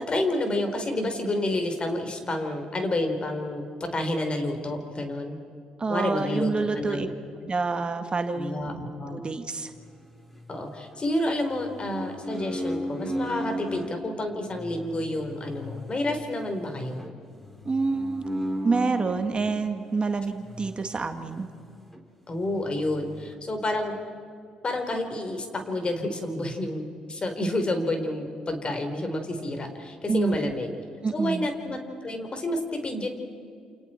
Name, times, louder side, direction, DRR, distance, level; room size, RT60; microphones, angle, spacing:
voice 1, 0.0-5.4 5.9-7.1 8.3-9.2 10.5-17.0 22.3-23.9 24.6-30.7 31.1-33.1, left 1 dB, 35° left, 5 dB, 4.2 m, -29 dB
voice 2, 5.8-7.1 7.4-8.8 9.1-9.7 17.7-18.2 18.6-21.5 30.1-30.5 31.0-31.5, right 4 dB, 35° right, 7 dB, 1.9 m, -27 dB
sound 1, 9.8-11.0 11.5-13.9 14.5-19.5 20.4-21.6 21.9-22.0 22.4-23.3, equal, 5° left, 3.5 m, -36 dB
29.0 x 28.5 x 4.5 m, 2.5 s
hypercardioid pair, 55°, 3 cm